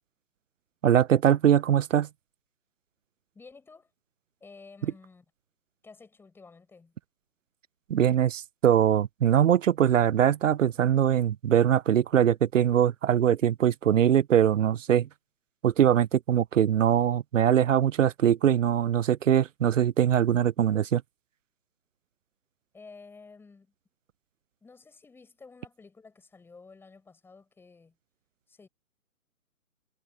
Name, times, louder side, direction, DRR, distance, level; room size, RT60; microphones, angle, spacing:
voice 1, 0.8-2.1 7.9-15.1 15.6-21.0, right 10 dB, 60° right, 0.6 m, -22 dB
voice 2, 3.3-3.9 4.4-5.2 5.8-6.9 22.7-23.7 24.6-28.0 28.5-28.7, left 4 dB, 5° left, 7.6 m, -52 dB
hypercardioid pair, 155°, 43 cm